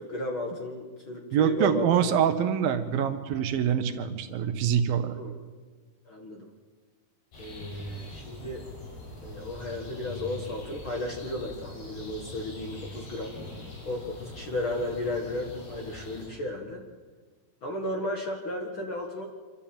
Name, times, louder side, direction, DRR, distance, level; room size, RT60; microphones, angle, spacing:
voice 1, 0.0-2.0 5.1-5.4 6.1-6.5 7.4-8.6 9.2-13.4 13.8-16.8 17.6-19.3, left 2 dB, 45° left, 1 dB, 1.9 m, -34 dB
voice 2, 1.3-5.2, right 8 dB, 75° right, 8 dB, 2.7 m, -25 dB
sound 1, 7.3-16.3, left 1 dB, 80° left, 7.3 m, -42 dB
26.5 x 13.0 x 8.9 m, 1.5 s
omnidirectional pair, 4.4 m